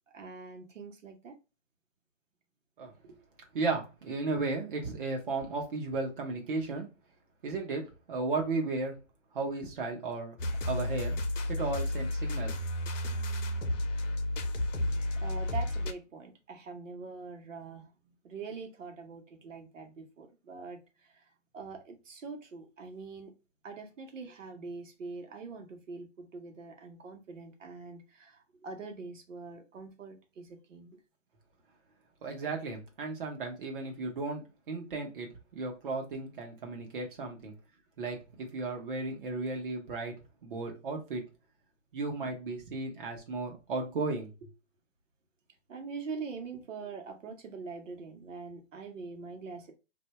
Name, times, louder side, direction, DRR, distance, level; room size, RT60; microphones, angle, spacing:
voice 1, 0.1-1.3 15.2-23.3 23.6-31.0 42.2-42.3 45.7-49.7, right 4 dB, 85° right, 1.1 m, -44 dB
voice 2, 2.8-3.1 3.5-6.9 7.4-9.0 9.3-10.4 10.6-11.1 11.5-12.6 32.2-37.5 38.0-40.1 40.4-41.2 41.9-44.5, right 3 dB, 45° right, 1.1 m, -35 dB
sound 1, 10.4-15.9, left 1 dB, 80° left, 0.9 m, -32 dB
2.6 x 2.3 x 4.0 m
hypercardioid pair, 175°, 37 cm